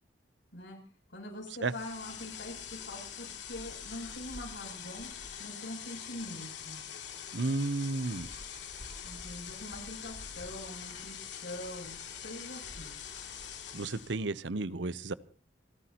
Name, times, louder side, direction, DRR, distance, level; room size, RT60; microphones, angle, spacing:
voice 1, 1.1-5.1 5.4-6.8 9.0-12.9, left 1 dB, 90° left, 1 dB, 7.9 m, -44 dB
sound 1, 1.6-14.2, left 7 dB, 75° left, 2.8 m, -44 dB
voice 2, 7.3-8.3 13.7-15.1, right 3 dB, 80° right, 16 dB, 0.8 m, -32 dB
28.5 x 13.5 x 3.0 m, 0.39 s
head